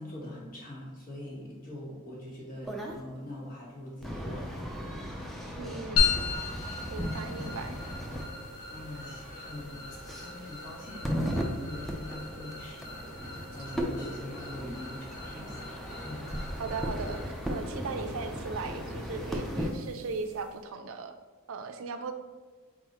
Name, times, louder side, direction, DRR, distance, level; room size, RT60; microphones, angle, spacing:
voice 1, 0.0-4.5 5.1-5.3 5.6-5.8 8.7-9.9 10.2-15.7 16.0-16.3, left 1 dB, 40° left, -4 dB, 1.4 m, -43 dB
sound 1, 2.6-3.0 4.0-19.7, equal, ahead, 0.4 m, -37 dB
voice 2, 5.6-6.1 6.9-7.8 16.6-21.1 21.5-22.1, right 4 dB, 65° right, 7 dB, 0.4 m, -38 dB
sound 2, 6.0-20.6, left 5 dB, 85° left, 1.1 m, -37 dB
4.4 x 3.9 x 3.0 m, 1.4 s
head